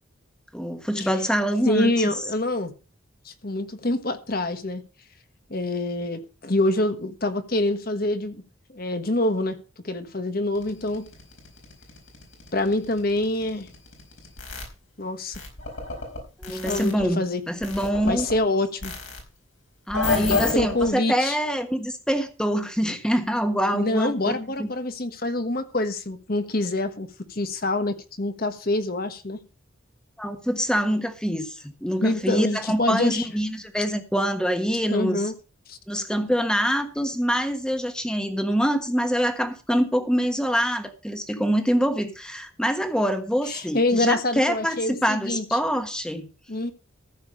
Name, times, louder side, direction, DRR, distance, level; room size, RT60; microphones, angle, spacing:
voice 1, 0.5-2.1 16.4-17.2 17.5-18.3 19.9-24.7 30.2-35.2 35.9-46.3, equal, 5° left, 7 dB, 1.3 m, -25 dB
voice 2, 1.6-2.7 3.2-4.8 5.5-8.4 8.7-9.6 9.8-11.1 12.5-13.7 15.0-15.4 16.5-17.4 18.0-18.9 20.1-21.4 23.7-29.4 32.0-33.3 34.9-35.3 35.7-35.8 43.5-45.6 46.5-46.7, left 2 dB, 45° left, 9 dB, 1.3 m, -26 dB
sound 1, 10.5-14.7 15.3-17.1 17.6-18.4 18.8-19.2 19.9-20.9, left 4 dB, 70° left, 4.7 m, -30 dB
14.5 x 6.9 x 5.3 m, 0.33 s
head